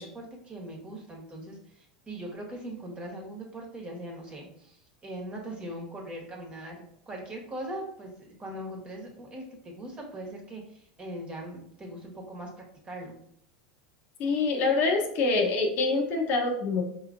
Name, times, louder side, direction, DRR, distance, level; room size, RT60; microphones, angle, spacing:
voice 1, 0.0-12.5 12.8-13.2, right 1 dB, 25° right, 0 dB, 1.3 m, -40 dB
voice 2, 14.2-16.8, left 3 dB, 50° left, 1 dB, 0.9 m, -25 dB
4.7 x 2.9 x 2.6 m, 0.69 s
hypercardioid pair, 100°, 4 cm